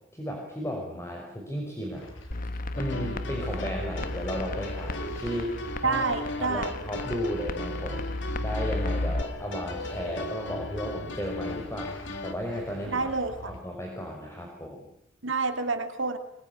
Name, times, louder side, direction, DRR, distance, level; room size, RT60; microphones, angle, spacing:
voice 1, 0.1-2.0 2.8-6.1 6.4-8.1 8.4-13.1 13.4-14.9, equal, 15° left, 0 dB, 5.5 m, -34 dB
sound 1, 1.9-13.6, equal, 85° left, 6.0 m, -45 dB
sound 2, 2.3-9.2, left 2 dB, 45° left, 1.3 m, -34 dB
sound 3, 2.7-12.3, left 2 dB, 65° left, 2.5 m, -38 dB
voice 2, 5.8-6.7 12.9-13.5 15.2-16.2, right 4 dB, 80° right, 7 dB, 2.9 m, -28 dB
24.0 x 24.0 x 9.6 m, 0.76 s
head